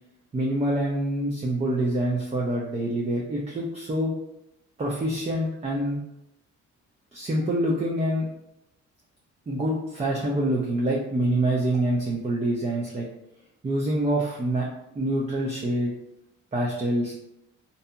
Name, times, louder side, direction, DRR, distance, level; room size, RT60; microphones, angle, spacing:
voice 1, 0.3-4.1 4.8-6.0 7.1-8.3 9.5-13.1 13.6-14.7 15.0-15.9 16.5-17.1, right 1 dB, 20° right, -2 dB, 0.5 m, -26 dB
2.7 x 2.6 x 2.2 m, 0.82 s
cardioid pair, 90°, 30 cm